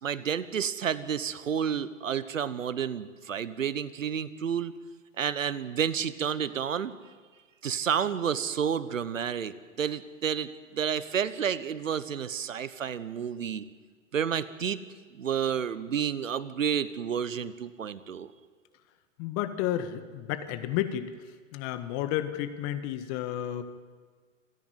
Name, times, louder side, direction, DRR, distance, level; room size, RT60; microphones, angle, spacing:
voice 1, 0.0-4.7 5.2-6.9 7.6-13.6 14.1-14.8 15.2-18.3, right 8 dB, 85° right, 16 dB, 1.1 m, -30 dB
voice 2, 19.2-21.1 21.5-23.6, left 12 dB, 45° left, 11 dB, 1.8 m, -31 dB
27.5 x 10.5 x 9.6 m, 1.6 s
hypercardioid pair, 100°, 38 cm